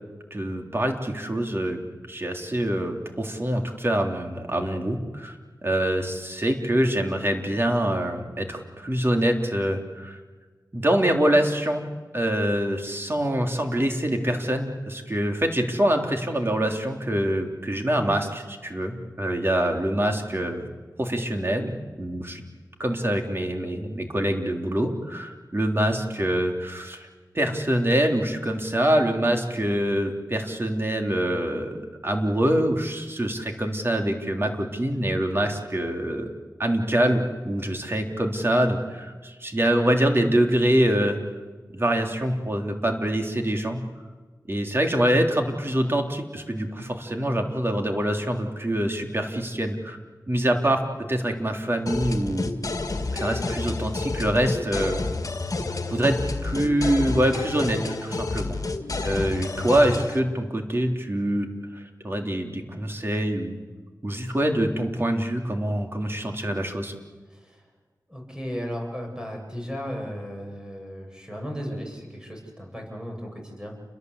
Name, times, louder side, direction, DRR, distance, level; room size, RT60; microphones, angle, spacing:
voice 1, 0.3-1.8 2.1-5.4 5.6-10.2 10.7-11.8 12.1-20.7 21.0-22.4 22.8-27.1 27.3-36.3 36.6-41.2 41.7-43.8 44.5-50.0 50.3-50.8 51.1-52.5 53.1-55.0 55.9-58.6 59.0-63.6 64.0-66.9, right 1 dB, 35° right, 3 dB, 3.5 m, -25 dB
sound 1, 51.9-60.2, left 3 dB, 55° left, 2.1 m, -29 dB
voice 2, 68.1-73.8, equal, 10° right, 1 dB, 7.8 m, -35 dB
29.5 x 22.5 x 8.3 m, 1.4 s
wide cardioid pair, 65°, 7 cm